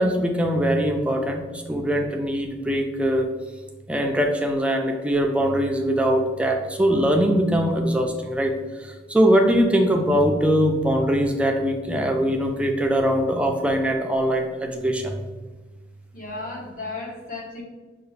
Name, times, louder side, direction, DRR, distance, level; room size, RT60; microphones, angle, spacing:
voice 1, 0.0-3.3 3.9-15.2, equal, 5° right, 3 dB, 0.3 m, -22 dB
voice 2, 16.1-17.6, left 3 dB, 50° left, -2 dB, 1.1 m, -34 dB
5.6 x 2.4 x 3.2 m, 1.3 s
head